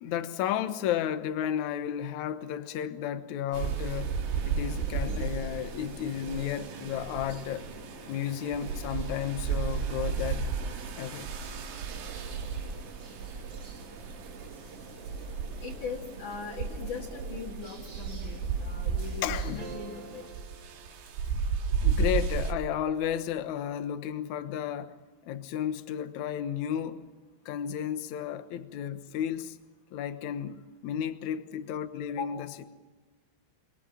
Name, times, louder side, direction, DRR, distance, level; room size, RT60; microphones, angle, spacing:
voice 1, 0.0-7.7 8.1-10.5 11.0-11.3 19.2-19.6 21.8-24.9 25.3-27.0 27.4-29.6 29.9-32.6, left 10 dB, 80° left, 1.6 m, -33 dB
sound 1, 3.5-20.3, right 3 dB, 35° right, 3.6 m, -47 dB
sound 2, 3.5-22.5, right 6 dB, 80° right, 4.3 m, -34 dB
voice 2, 15.6-20.2 32.1-32.5, left 6 dB, 50° left, 3.0 m, -40 dB
sound 3, 19.6-21.8, right 7 dB, 55° right, 2.0 m, -48 dB
28.5 x 22.0 x 7.5 m
omnidirectional pair, 5.2 m